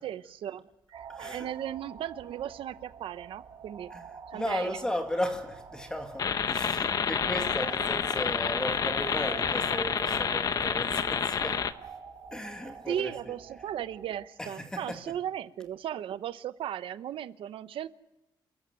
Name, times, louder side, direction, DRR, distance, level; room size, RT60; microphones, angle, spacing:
voice 1, 0.0-3.9 4.3-4.8 12.9-17.9, right 10 dB, 80° right, 0.9 m, -36 dB
sound 1, 0.9-14.3, right 6 dB, 55° right, 2.8 m, -47 dB
voice 2, 1.1-1.5 3.9-4.1 4.3-11.7 12.3-13.3 14.4-15.0, left 1 dB, 10° left, 2.1 m, -35 dB
sound 2, 6.2-11.7, left 7 dB, 45° left, 0.9 m, -29 dB
28.0 x 14.0 x 9.4 m
wide cardioid pair, 160°, 9 cm